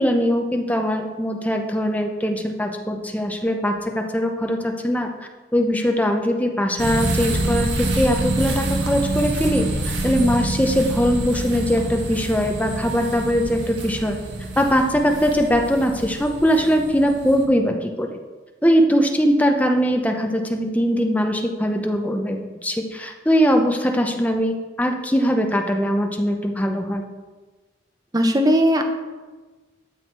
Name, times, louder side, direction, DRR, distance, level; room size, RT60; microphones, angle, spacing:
voice 1, 0.0-5.1 5.5-14.2 14.6-18.2 18.6-27.0, equal, 10° left, 3 dB, 0.8 m, -21 dB
sound 1, 6.8-17.4, right 2 dB, 85° right, 1.8 m, -26 dB
voice 2, 28.1-28.8, equal, 20° right, 5 dB, 0.9 m, -17 dB
12.5 x 6.4 x 4.7 m, 1.3 s
head